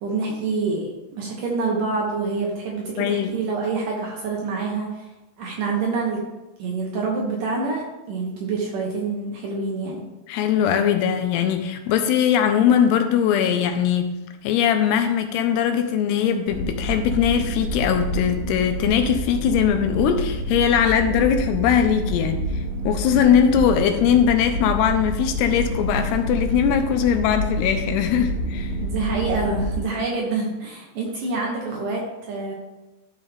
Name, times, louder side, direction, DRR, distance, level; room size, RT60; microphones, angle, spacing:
voice 1, 0.0-5.1 5.4-6.2 6.6-10.0 28.8-32.6, right 4 dB, 65° right, -1 dB, 2.2 m, -26 dB
voice 2, 3.0-3.3 10.3-14.1 14.4-28.7, left 8 dB, 80° left, 7 dB, 2.6 m, -20 dB
sound 1, 16.5-29.8, equal, 60° left, 2.9 m, -28 dB
12.5 x 5.5 x 3.5 m, 1.0 s
omnidirectional pair, 4.9 m